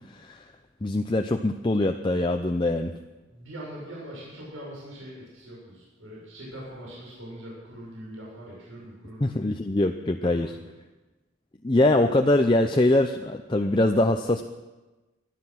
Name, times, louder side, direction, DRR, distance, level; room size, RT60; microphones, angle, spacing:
voice 1, 0.1-0.5 0.8-2.9 9.2-10.5 11.6-14.4, left 2 dB, 25° left, 5 dB, 0.6 m, -23 dB
voice 2, 3.3-9.3 10.2-10.7, right 1 dB, 75° right, -5 dB, 7.0 m, -42 dB
20.5 x 12.0 x 5.9 m, 1.2 s
head